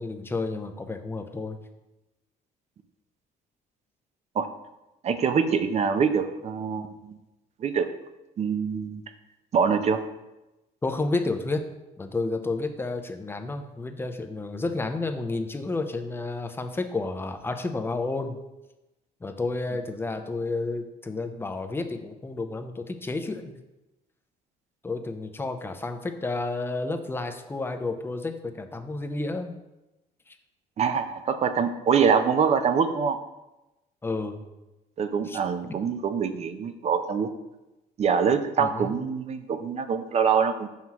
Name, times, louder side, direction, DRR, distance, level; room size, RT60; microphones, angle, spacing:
voice 1, 0.0-1.6 10.8-11.7 12.0-18.4 19.2-23.6 24.8-29.6 30.3-30.4 34.0-34.4 35.2-35.4 38.6-39.0, left 3 dB, 15° left, 6 dB, 0.5 m, -31 dB
voice 2, 5.0-7.2 7.6-7.9 8.4-9.0 9.5-10.0 30.8-33.2 35.0-37.3 38.0-40.7, right 6 dB, 40° right, 9 dB, 0.5 m, -24 dB
5.9 x 5.6 x 2.9 m, 0.99 s
cardioid pair, 110°, 17 cm